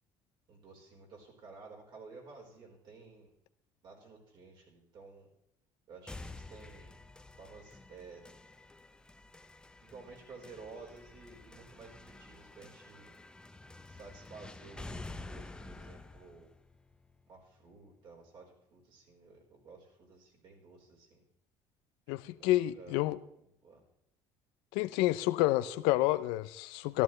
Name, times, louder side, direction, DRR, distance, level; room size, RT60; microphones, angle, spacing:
voice 1, 0.5-3.3 3.8-5.3 5.9-6.9 7.4-8.2 9.8-13.1 13.9-16.5 17.3-21.2 22.3-23.1 23.4-23.8, right 4 dB, 55° right, 4.4 m, -53 dB
sound 1, 6.1-18.0, left 2 dB, 10° left, 0.6 m, -50 dB
voice 2, 22.1-23.2 24.7-27.0, left 17 dB, 85° left, 0.5 m, -29 dB
13.5 x 13.0 x 3.2 m
cardioid pair, 110°, 9 cm